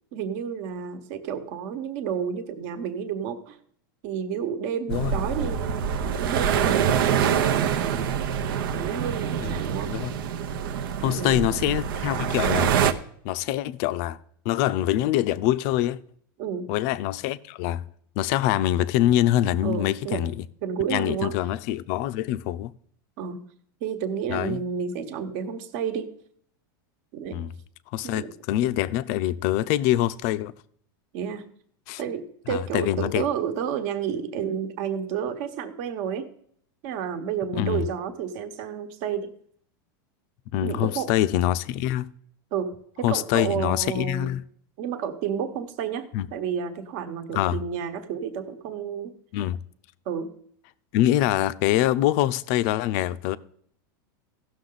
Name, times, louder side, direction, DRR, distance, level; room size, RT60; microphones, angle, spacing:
voice 1, 0.1-3.6 4.0-8.2 8.5-10.1 11.0-11.4 16.4-16.7 19.6-20.2 20.6-21.3 23.2-23.5 23.8-26.1 27.1-27.4 28.0-28.3 31.1-31.5 32.0-36.3 36.8-39.3 40.6-41.1 42.5-44.4 44.8-49.1 50.0-50.3, right 7 dB, 50° right, 1.2 m, -31 dB
sound 1, 4.9-12.9, right 8 dB, 80° right, 0.9 m, -25 dB
voice 2, 11.0-12.7 13.2-14.2 14.4-16.0 16.7-17.8 18.2-20.3 20.9-22.7 24.3-24.6 27.3-27.5 27.9-30.5 31.9-32.0 32.5-33.2 37.6-37.9 40.5-42.1 43.0-44.4 46.1-46.3 47.4-47.6 49.3-49.6 50.9-53.4, left 13 dB, 50° left, 0.5 m, -24 dB
16.0 x 6.6 x 3.9 m
supercardioid pair, 150°, 11 cm